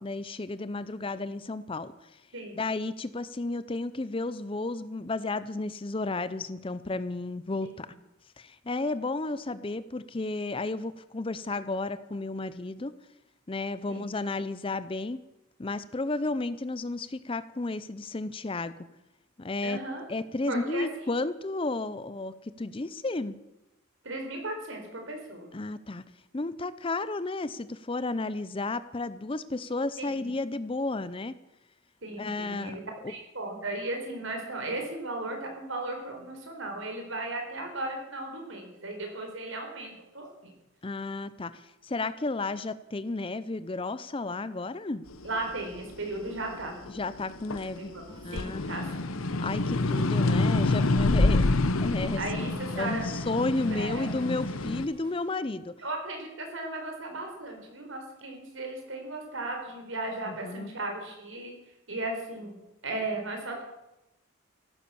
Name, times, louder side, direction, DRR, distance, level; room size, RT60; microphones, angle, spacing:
voice 1, 0.0-2.2 2.5-7.9 8.4-12.9 13.5-15.2 15.6-18.7 19.4-19.8 20.1-23.4 25.5-26.0 26.3-31.3 32.2-33.1 40.8-45.1 46.9-47.9 48.2-48.8 49.4-52.2 52.8-55.8 60.3-60.7, left 2 dB, 25° left, 15 dB, 0.5 m, -33 dB
voice 2, 19.6-20.0 20.5-20.9 24.0-25.5 30.0-30.3 32.0-32.8 33.1-40.5 45.2-46.8 47.8-48.8 52.2-53.1 53.6-54.1 55.8-61.5 61.9-62.5 62.8-63.6, right 2 dB, 65° right, 3 dB, 4.4 m, -36 dB
sound 1, 45.2-47.8 48.2-54.9, left 2 dB, 80° left, 0.9 m, -27 dB
sound 2, 48.1-55.4, equal, 20° right, 3.0 m, -51 dB
14.5 x 12.5 x 7.0 m, 0.95 s
head